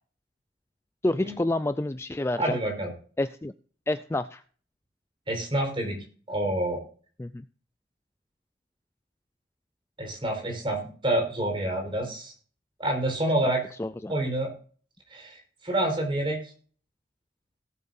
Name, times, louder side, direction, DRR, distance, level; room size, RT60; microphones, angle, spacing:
voice 1, 1.0-2.6 3.2-3.5 3.9-4.4 7.2-7.4 13.8-14.1, left 1 dB, 15° left, 12 dB, 0.4 m, -28 dB
voice 2, 2.4-2.9 5.3-6.0 6.3-6.8 10.0-12.3 12.8-13.7 14.1-14.5 15.1-16.4, right 1 dB, 30° right, 2 dB, 4.3 m, -28 dB
18.0 x 8.5 x 2.6 m, 0.42 s
head